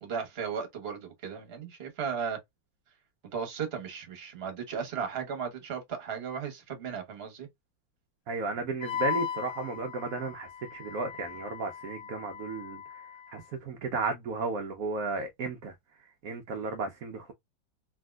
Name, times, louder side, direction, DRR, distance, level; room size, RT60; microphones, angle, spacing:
voice 1, 0.0-2.4 3.3-7.5, right 6 dB, 40° right, 1.0 m, -35 dB
voice 2, 8.3-13.0 13.3-15.7 16.2-17.3, right 3 dB, 70° right, 0.8 m, -34 dB
Wind instrument woodwind instrument, 8.8-13.4, left 8 dB, 80° left, 0.8 m, -38 dB
3.5 x 2.7 x 2.2 m
omnidirectional pair, 2.0 m